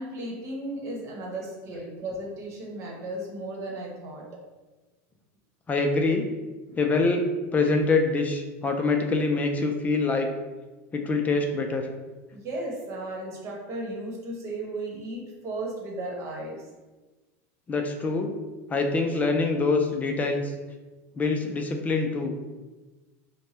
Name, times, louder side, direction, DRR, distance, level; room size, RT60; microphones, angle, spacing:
voice 1, 0.0-4.2 6.7-7.1 7.6-7.8 12.3-16.6, right 1 dB, 40° right, -2 dB, 1.1 m, -35 dB
voice 2, 5.7-6.3 6.8-7.3 7.5-10.3 10.9-11.9 17.7-18.3 18.7-20.5 21.2-22.3, left 3 dB, 20° left, 4 dB, 0.5 m, -25 dB
4.6 x 2.2 x 2.9 m, 1.2 s
supercardioid pair, 125°, 8 cm